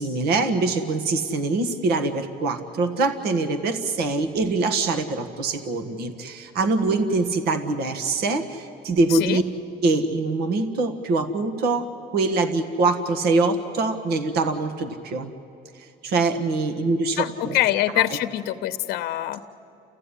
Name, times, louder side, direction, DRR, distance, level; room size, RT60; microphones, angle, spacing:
voice 1, 0.0-9.4 9.8-15.3 15.7-17.6 18.0-18.1, right 3 dB, 70° right, 8 dB, 1.6 m, -24 dB
voice 2, 9.1-9.4 17.2-19.4, left 14 dB, 70° left, 9 dB, 0.9 m, -24 dB
30.0 x 15.0 x 9.9 m, 2.8 s
cardioid pair, 115°, 17 cm